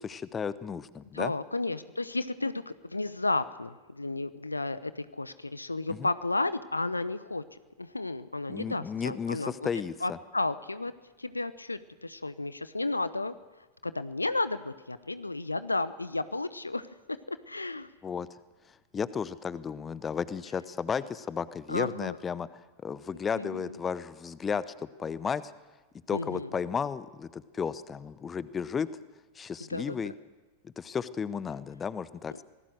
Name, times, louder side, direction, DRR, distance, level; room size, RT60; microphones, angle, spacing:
voice 1, 0.0-1.3 5.9-6.1 8.5-10.2 18.0-18.3 18.9-25.5 26.1-28.9 29.3-30.1 30.6-32.4, left 6 dB, 20° left, 17 dB, 0.9 m, -34 dB
voice 2, 1.1-7.4 7.8-9.7 10.0-10.9 11.2-13.3 13.8-16.9 17.3-17.9 21.7-22.2 23.4-23.8 26.1-26.5 29.7-30.1, left 2 dB, 80° left, 14 dB, 0.8 m, -33 dB
26.5 x 19.0 x 6.5 m, 1.2 s
figure-of-eight pair, 90°, 0 cm